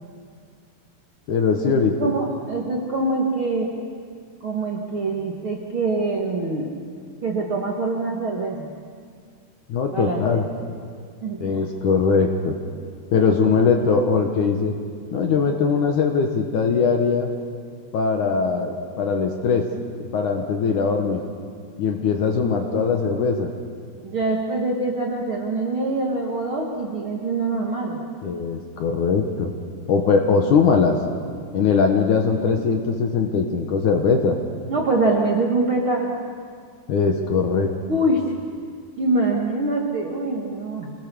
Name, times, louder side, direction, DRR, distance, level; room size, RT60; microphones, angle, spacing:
voice 1, 1.3-2.1 9.7-10.5 11.4-12.5 13.1-14.7 15.1-17.3 17.9-19.6 20.1-21.2 21.8-23.5 28.2-29.5 29.9-31.0 31.5-34.4 36.9-37.7, left 5 dB, 60° left, 3 dB, 2.3 m, -20 dB
voice 2, 2.0-3.7 4.4-6.8 7.2-8.7 9.9-10.4 11.2-11.6 24.0-28.0 34.7-36.1 37.9-38.2 39.0-40.9, right 2 dB, 50° right, -1 dB, 1.7 m, -24 dB
27.0 x 19.5 x 6.9 m, 2.1 s
omnidirectional pair, 4.7 m